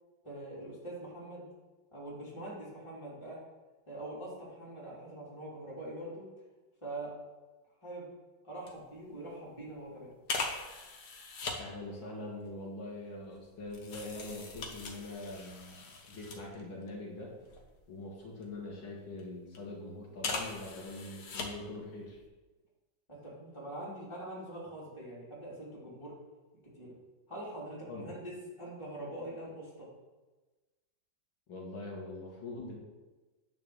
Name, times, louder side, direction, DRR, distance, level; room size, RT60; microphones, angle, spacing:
voice 1, 0.2-1.5 1.9-3.4 3.9-6.3 6.8-7.1 7.8-8.1 8.4-10.1 23.1-26.1 26.7-26.9 27.3-29.9, right 1 dB, 15° left, -7 dB, 3.3 m, -43 dB
sound 1, 8.7-8.8 9.1-9.3 10.3-11.6 12.4-16.9 17.3-18.6 19.2-19.6 20.1-21.8 22.1-22.3, left 3 dB, 55° left, 1.7 m, -41 dB
voice 2, 11.5-17.3 17.9-22.2 27.9-28.1 31.5-32.8, left 2 dB, 80° left, -2 dB, 2.4 m, -43 dB
9.5 x 4.8 x 6.4 m, 1.2 s
omnidirectional pair, 2.2 m